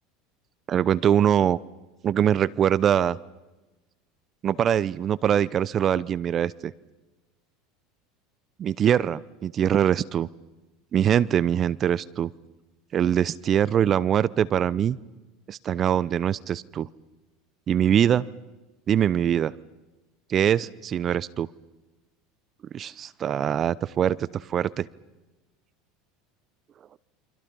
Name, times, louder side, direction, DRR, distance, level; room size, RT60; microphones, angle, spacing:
voice 1, 0.7-1.6 2.0-3.2 4.4-6.7 8.6-10.3 10.9-12.3 12.9-15.0 15.5-16.9 17.7-18.2 18.9-19.5 20.3-21.5 22.7-24.9, right 9 dB, 40° right, 20 dB, 0.7 m, -23 dB
29.0 x 25.5 x 5.5 m, 1.1 s
hypercardioid pair, 80°, 0 cm